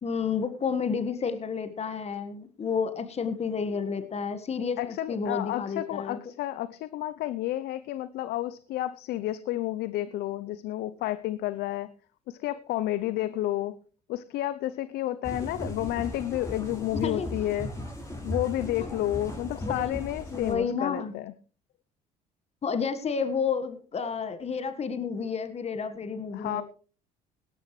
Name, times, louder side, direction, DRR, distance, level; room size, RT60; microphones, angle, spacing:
voice 1, 0.0-6.2 17.0-17.5 18.8-18.9 19.5-20.0 20.3-21.1 22.6-26.6, left 6 dB, 35° left, 10 dB, 1.6 m, -31 dB
voice 2, 4.8-11.9 12.3-13.8 14.1-17.7 18.2-21.3 26.3-26.6, left 14 dB, 65° left, 15 dB, 0.7 m, -31 dB
sound 1, 15.2-20.5, left 1 dB, 15° left, 6.1 m, -37 dB
18.0 x 12.0 x 3.2 m, 0.38 s
hypercardioid pair, 70°, 18 cm